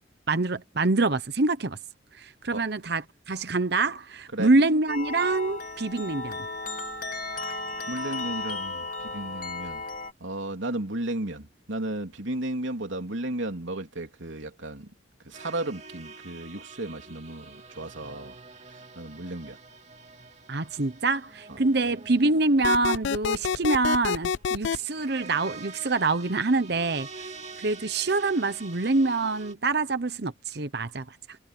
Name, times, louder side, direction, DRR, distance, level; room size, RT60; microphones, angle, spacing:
voice 1, 0.3-1.8 2.1-6.5 20.5-31.4, right 3 dB, 60° right, 1.0 m, -26 dB
sound 1, 4.9-10.1, left 3 dB, 45° left, 3.6 m, -34 dB
voice 2, 7.9-9.8 10.2-14.9 15.2-18.4 18.7-19.6, right 1 dB, 80° right, 3.2 m, -34 dB
sound 2, 15.3-29.5, right 4 dB, 35° right, 2.7 m, -46 dB
sound 3, 22.6-24.8, left 6 dB, 70° left, 0.4 m, -27 dB
head